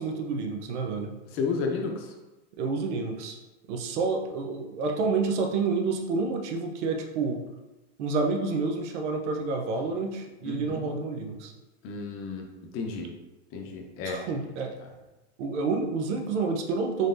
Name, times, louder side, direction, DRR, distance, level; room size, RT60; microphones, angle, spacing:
voice 1, 0.0-1.1 2.6-3.4 3.7-7.4 8.0-11.5 14.0-14.8 15.4-17.1, right 4 dB, 70° right, 3 dB, 0.8 m, -29 dB
voice 2, 1.3-2.1 10.4-10.9 11.8-12.5 12.7-13.1 13.5-14.2, left 4 dB, 40° left, 2 dB, 0.8 m, -32 dB
4.1 x 3.3 x 2.6 m, 1.1 s
supercardioid pair, 125°, 36 cm